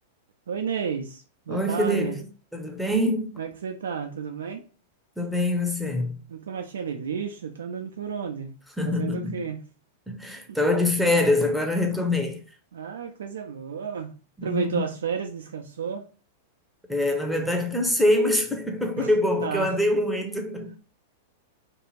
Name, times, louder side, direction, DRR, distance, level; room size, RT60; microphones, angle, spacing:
voice 1, 0.5-2.2 3.4-4.6 6.3-8.5 8.8-9.6 12.7-14.1 14.4-16.0 19.0-19.1 19.4-19.8, right 6 dB, 75° right, 0.4 m, -32 dB
voice 2, 1.5-2.2 2.5-3.4 5.2-6.1 8.8-9.4 10.1-12.4 14.4-14.8 16.9-20.8, left 1 dB, ahead, 0.7 m, -24 dB
2.6 x 2.4 x 3.1 m
hypercardioid pair, 100°, 0 cm